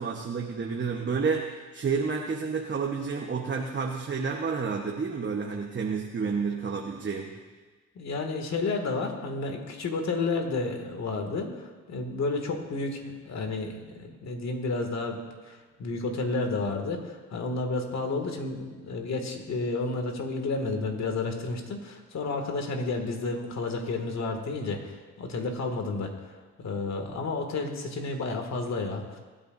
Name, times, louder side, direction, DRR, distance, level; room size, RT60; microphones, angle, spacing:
voice 1, 0.0-7.3, right 5 dB, 40° right, 1 dB, 1.2 m, -30 dB
voice 2, 8.0-15.2 15.4-26.1 26.6-29.2, left 3 dB, 60° left, 3 dB, 2.3 m, -31 dB
25.0 x 10.0 x 2.7 m, 1.4 s
cardioid pair, 75°, 30 cm